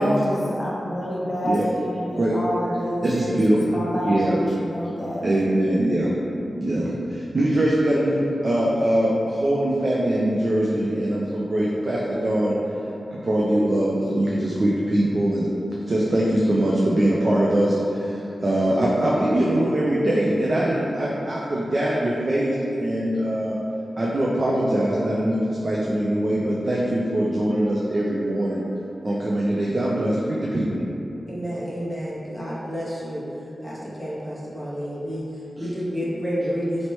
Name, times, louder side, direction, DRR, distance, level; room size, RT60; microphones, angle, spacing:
voice 1, 0.0-5.2, equal, 20° left, -6 dB, 0.5 m, -27 dB
voice 2, 3.0-4.4 5.2-6.1 6.4-12.5 13.1-15.5 15.9-23.6 24.0-28.6 29.0-30.8, right 1 dB, 45° right, -5 dB, 0.4 m, -22 dB
voice 3, 31.3-33.2 33.6-36.9, equal, 15° right, -8 dB, 0.7 m, -30 dB
4.1 x 3.1 x 3.0 m, 2.8 s
wide cardioid pair, 95°, 0 cm